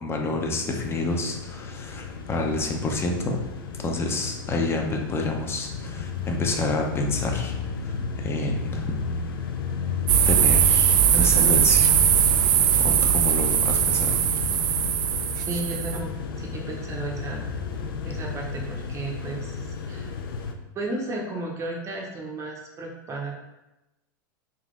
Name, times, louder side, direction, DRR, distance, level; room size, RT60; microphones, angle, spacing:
voice 1, 0.0-3.4 3.8-7.5 7.8-9.0 10.3-11.9 12.8-14.2, left 2 dB, 20° left, 2 dB, 0.6 m, -28 dB
sound 1, 0.7-20.5, left 5 dB, 90° left, 0.5 m, -33 dB
sound 2, 10.1-16.0, right 9 dB, 65° right, 0.4 m, -20 dB
voice 2, 11.1-11.7 15.5-17.5 18.0-20.1 20.7-23.3, right 2 dB, 25° right, 0 dB, 0.7 m, -34 dB
3.8 x 2.9 x 3.6 m, 0.99 s
supercardioid pair, 125°, 12 cm